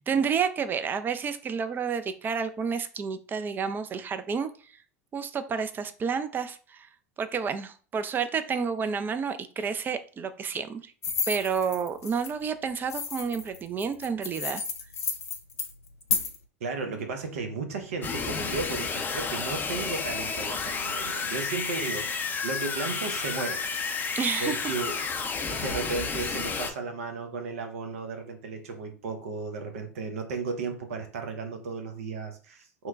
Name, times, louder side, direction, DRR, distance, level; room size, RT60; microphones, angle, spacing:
voice 1, 0.0-4.5 5.1-6.9 7.2-10.9 11.3-14.6 24.1-24.6, right 6 dB, 25° right, 10 dB, 0.4 m, -30 dB
sound 1, 11.0-12.3 12.9-16.4, left 5 dB, 80° left, 0.5 m, -32 dB
voice 2, 16.6-23.6 24.4-25.0 25.4-32.9, right 4 dB, 70° right, 6 dB, 0.7 m, -34 dB
sound 2, 18.0-26.7, left 5 dB, 25° left, 0.6 m, -31 dB
3.0 x 2.2 x 3.5 m, 0.39 s
figure-of-eight pair, 80°, 8 cm